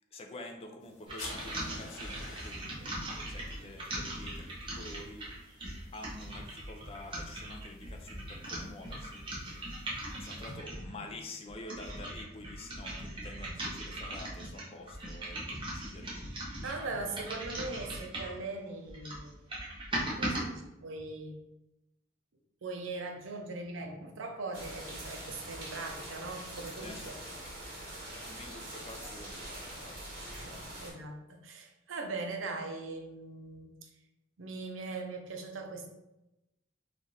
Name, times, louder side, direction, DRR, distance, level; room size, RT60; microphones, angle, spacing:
voice 1, 0.1-5.3 5.9-9.2 10.2-16.6 26.8-27.1 27.8-27.9 28.3-30.6, left 2 dB, 30° left, 3 dB, 0.4 m, -48 dB
sound 1, 0.8-10.5, left 2 dB, 80° left, 1.2 m, -52 dB
sound 2, 1.1-10.9 11.5-18.4 18.8-20.4, right 1 dB, 25° right, 0.7 m, -40 dB
voice 2, 16.6-19.4 20.2-21.4 22.6-27.2 30.3-33.9 34.4-35.9, right 3 dB, 75° right, 4 dB, 0.6 m, -40 dB
sound 3, 24.5-30.9, right 1 dB, 50° right, 1.5 m, -44 dB
3.2 x 2.5 x 4.0 m, 0.94 s
head